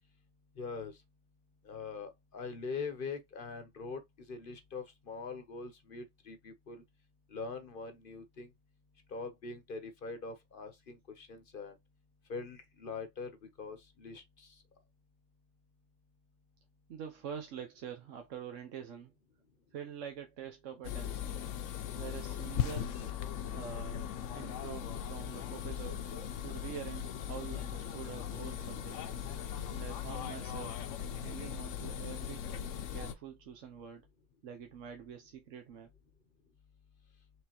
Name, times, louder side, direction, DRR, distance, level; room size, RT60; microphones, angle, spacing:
voice 1, 0.6-1.0 1.6-6.8 7.3-8.5 9.1-11.7 12.3-14.6, left 4 dB, 50° left, 0.9 m, -43 dB
voice 2, 16.9-19.1 19.7-21.4 21.9-23.0 23.5-26.0 26.4-29.0 29.7-30.8 31.2-32.4 32.9-34.1 34.4-35.9, right 8 dB, 75° right, 1.1 m, -46 dB
sound 1, 20.8-33.1, left 9 dB, 75° left, 1.0 m, -39 dB
4.9 x 3.4 x 2.8 m
omnidirectional pair, 1.3 m